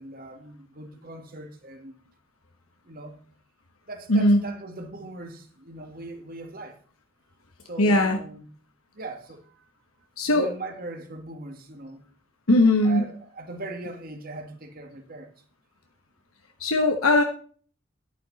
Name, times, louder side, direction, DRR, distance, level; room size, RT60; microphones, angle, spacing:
voice 1, 0.0-1.9 2.9-3.2 3.9-6.8 7.7-8.5 8.9-9.7 10.3-12.0 12.8-15.3, right 2 dB, 45° right, 1.9 m, -40 dB
voice 2, 4.1-4.5 7.8-8.2 10.2-10.5 12.5-13.1 16.6-17.2, left 1 dB, 80° left, 1.1 m, -19 dB
11.5 x 9.2 x 4.1 m
head